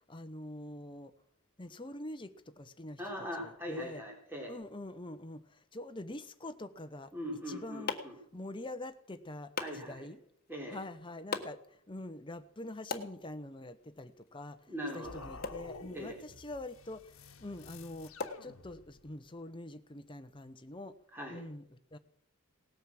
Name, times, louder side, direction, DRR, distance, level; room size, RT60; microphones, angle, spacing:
voice 1, 0.1-1.1 1.6-3.0 3.4-4.0 4.5-7.1 7.5-8.0 8.3-10.2 10.7-18.1 18.4-21.0 21.3-22.0, left 1 dB, 20° left, 10 dB, 0.9 m, -45 dB
voice 2, 3.0-4.5 7.1-8.1 9.6-10.1 10.5-10.8 14.7-15.2 15.9-16.2 21.1-21.4, equal, 10° right, -1 dB, 4.2 m, -41 dB
sound 1, 7.2-19.1, left 4 dB, 45° left, 1.5 m, -46 dB
sound 2, 15.0-19.2, left 3 dB, 65° left, 1.4 m, -51 dB
18.0 x 9.2 x 7.6 m, 0.67 s
head